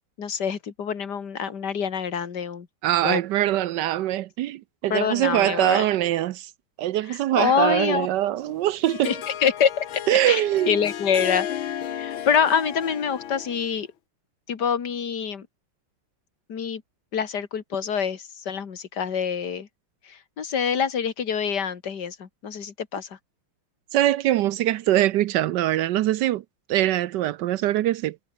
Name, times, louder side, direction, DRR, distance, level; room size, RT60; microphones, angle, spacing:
voice 1, 0.2-2.7 3.0-3.2 4.9-5.9 7.1-8.1 9.0-9.9 10.3-11.5 11.9-13.9 14.5-15.5 16.5-16.8 17.1-19.7 20.1-23.1, left 7 dB, 50° left, 2.5 m, -26 dB
voice 2, 2.8-6.5 6.8-9.1 10.1-10.8 23.9-26.4 26.7-28.2, right 13 dB, 70° right, 1.0 m, -23 dB
Harp, 8.4-13.8, left 10 dB, 70° left, 2.0 m, -34 dB
omnidirectional pair, 2.3 m